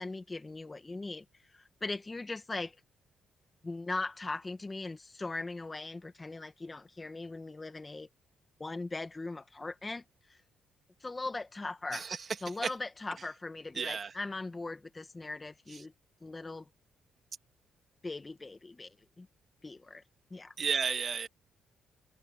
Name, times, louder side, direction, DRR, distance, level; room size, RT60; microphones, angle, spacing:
voice 1, 0.0-2.8 3.6-8.1 8.6-10.0 10.3-10.4 11.0-12.1 12.4-15.9 16.2-16.7 18.0-19.3 19.6-20.0 20.3-20.5, left 3 dB, 20° left, 1.7 m, -40 dB
voice 2, 13.8-14.1 20.6-21.3, right 6 dB, 45° right, 3.0 m, -32 dB
cardioid pair, 90°, 0 cm